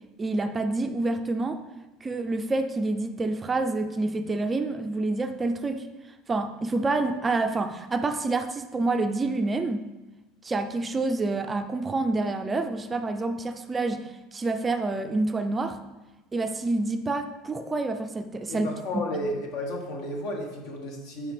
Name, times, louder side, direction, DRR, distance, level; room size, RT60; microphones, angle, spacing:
voice 1, 0.2-1.6 2.0-5.9 6.3-9.8 10.4-15.8 16.3-18.7, right 2 dB, 15° right, 7 dB, 0.4 m, -28 dB
voice 2, 18.5-21.3, left 1 dB, 70° left, 1 dB, 1.6 m, -32 dB
8.9 x 5.0 x 3.3 m, 1.1 s
cardioid pair, 140°, 0 cm